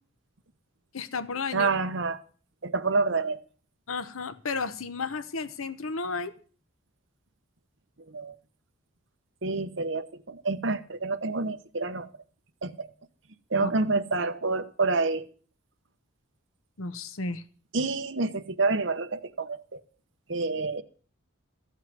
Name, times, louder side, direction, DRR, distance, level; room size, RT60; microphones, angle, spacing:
voice 1, 0.9-1.7 3.9-6.3 13.6-13.7 16.8-17.4, left 4 dB, 90° left, 13 dB, 0.9 m, -33 dB
voice 2, 1.5-2.2 2.6-3.4 8.1-8.3 9.4-12.1 12.6-12.9 13.5-15.2 17.7-19.8 20.3-20.8, right 3 dB, 60° right, 8 dB, 1.0 m, -28 dB
14.0 x 5.7 x 9.3 m, 0.41 s
head